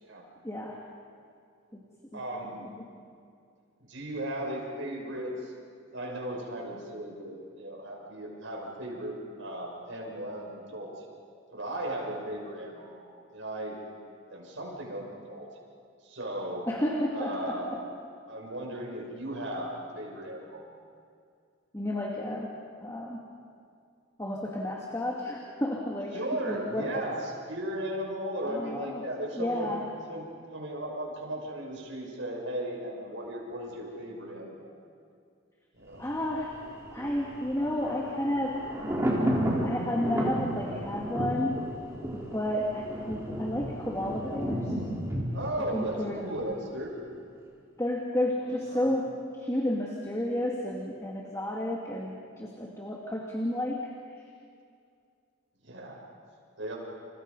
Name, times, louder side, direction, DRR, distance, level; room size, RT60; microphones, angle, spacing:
voice 1, 0.4-0.8 2.8-2.9 16.7-17.8 21.7-22.5 22.8-23.2 24.2-26.2 26.5-26.9 28.4-29.0 29.4-29.8 36.0-36.5 36.9-38.6 39.6-41.6 42.1-44.7 45.7-46.2 47.8-49.1 49.4-53.9, left 1 dB, 15° left, -1 dB, 2.2 m, -31 dB
voice 2, 2.1-2.7 3.9-5.5 5.9-10.9 11.5-13.1 13.3-13.8 14.3-15.5 16.0-16.6 17.1-17.8 18.3-20.6 26.1-29.7 30.1-34.7 35.7-36.0 45.3-46.9 48.4-48.9 55.6-56.0 56.6-56.8, right 1 dB, 65° right, 0 dB, 6.6 m, -36 dB
Thunder, 35.9-46.8 47.1-47.2, equal, 15° right, 4.1 m, -33 dB
30.0 x 29.5 x 5.5 m, 2.3 s
head